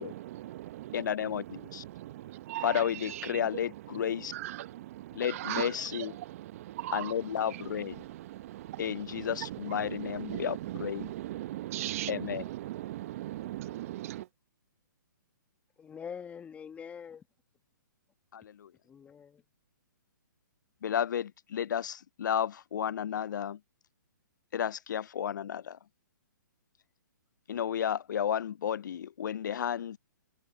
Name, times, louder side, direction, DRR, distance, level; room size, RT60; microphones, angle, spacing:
voice 1, 0.0-14.2, right 15 dB, 45° right, 1.0 m, -39 dB
voice 2, 0.9-1.8 2.6-4.3 5.1-6.1 6.9-8.0 8.8-11.1 12.1-12.4 18.3-18.7 20.8-23.6 24.5-25.8 27.5-30.0, left 9 dB, 65° left, 0.4 m, -32 dB
voice 3, 15.8-17.2 18.8-19.4, left 7 dB, 10° left, 1.5 m, -44 dB
hypercardioid pair, 135°, 11 cm